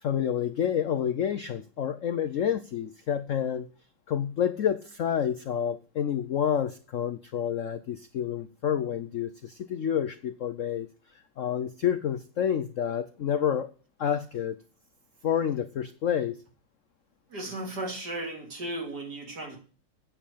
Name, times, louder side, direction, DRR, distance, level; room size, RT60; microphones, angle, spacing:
voice 1, 0.0-3.7 4.1-10.9 11.4-13.7 14.0-14.6 15.2-16.4, left 9 dB, 80° left, 11 dB, 0.6 m, -29 dB
voice 2, 17.3-19.6, right 1 dB, 50° right, 1 dB, 3.7 m, -35 dB
9.5 x 7.4 x 8.4 m, 0.37 s
omnidirectional pair, 2.2 m